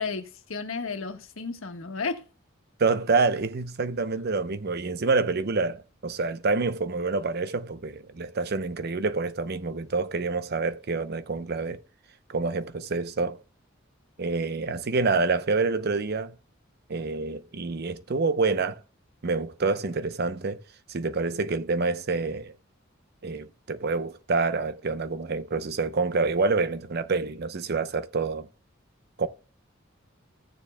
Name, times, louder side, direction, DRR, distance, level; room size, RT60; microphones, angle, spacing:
voice 1, 0.0-2.2, left 4 dB, 85° left, 1.4 m, -33 dB
voice 2, 2.8-11.8 12.3-13.4 14.2-16.4 16.9-18.8 19.2-20.6 20.9-22.5 23.2-28.5 29.2-29.3, right 3 dB, 50° right, 0.7 m, -27 dB
16.0 x 7.0 x 2.2 m
head